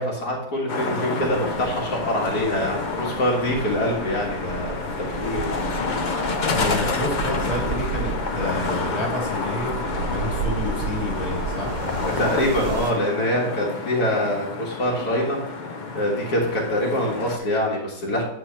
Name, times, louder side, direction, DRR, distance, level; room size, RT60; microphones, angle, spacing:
voice 1, 0.0-5.5 12.2-15.6 15.9-18.2, left 1 dB, 75° left, -2 dB, 2.0 m, -24 dB
sound 1, 0.7-17.4, left 4 dB, 55° left, 0.5 m, -29 dB
sound 2, 1.2-12.9, right 5 dB, 75° right, 1.7 m, -33 dB
voice 2, 6.5-11.8, left 1 dB, 15° left, -3 dB, 2.8 m, -29 dB
9.7 x 4.0 x 4.4 m, 0.81 s
omnidirectional pair, 1.7 m